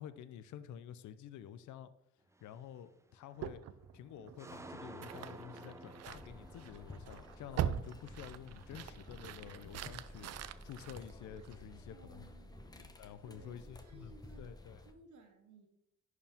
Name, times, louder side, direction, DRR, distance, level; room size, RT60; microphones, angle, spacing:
voice 1, 0.0-1.9 2.4-3.6 3.9-10.3 10.6-12.3 12.8-14.8, left 9 dB, 70° left, 13 dB, 0.6 m, -50 dB
sound 1, 2.3-2.7 3.2-3.8 4.1-9.5 9.8-11.0, right 2 dB, 10° right, 0.5 m, -54 dB
sound 2, 3.4-11.8, right 10 dB, 55° right, 0.5 m, -43 dB
sound 3, 6.0-14.9, left 2 dB, 15° left, 0.9 m, -53 dB
voice 2, 11.9-14.5 14.8-15.7, right 4 dB, 75° right, 2 dB, 2.1 m, -60 dB
11.0 x 4.7 x 3.5 m, 0.85 s
cardioid pair, 90°, 30 cm